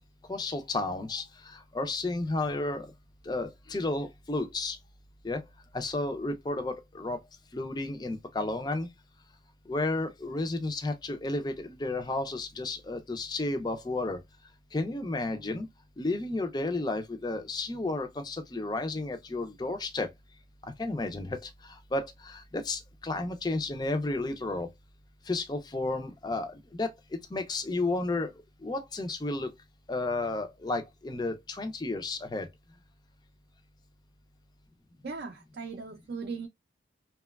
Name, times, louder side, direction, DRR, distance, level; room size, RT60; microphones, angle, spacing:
voice 1, 0.3-2.9 3.3-4.8 5.2-5.4 5.7-7.2 7.5-8.9 9.7-14.2 14.7-15.7 16.0-20.1 20.8-24.7 25.3-26.9 27.3-28.3 28.6-29.5 29.9-32.5, left 2 dB, 20° left, 0.4 m, -32 dB
voice 2, 35.0-36.5, right 4 dB, 55° right, 0.4 m, -38 dB
2.9 x 2.1 x 2.2 m
head